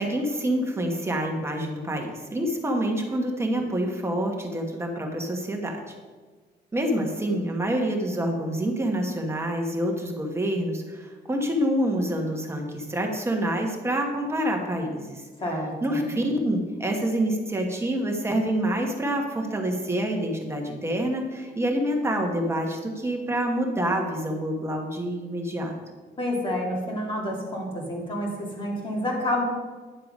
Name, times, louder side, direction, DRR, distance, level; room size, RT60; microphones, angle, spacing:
voice 1, 0.0-5.9 6.7-15.3 15.8-25.7, right 1 dB, 15° right, 1 dB, 1.2 m, -27 dB
voice 2, 15.4-16.1 26.2-29.4, left 1 dB, 30° left, -2 dB, 2.4 m, -29 dB
10.0 x 6.6 x 5.3 m, 1.4 s
wide cardioid pair, 175°, 18 cm